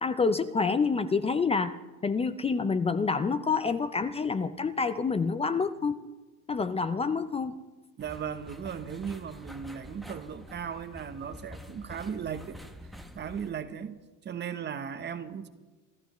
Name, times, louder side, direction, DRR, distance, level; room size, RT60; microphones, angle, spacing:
voice 1, 0.0-1.8 2.0-6.0 6.5-7.5, left 4 dB, 15° left, 11 dB, 0.5 m, -27 dB
sound 1, 8.0-13.5, equal, ahead, 0.9 m, -47 dB
voice 2, 8.0-12.6 13.2-14.0 14.2-15.5, right 7 dB, 30° right, 11 dB, 1.0 m, -37 dB
27.0 x 12.5 x 3.1 m, 1.3 s
cardioid pair, 120°, 36 cm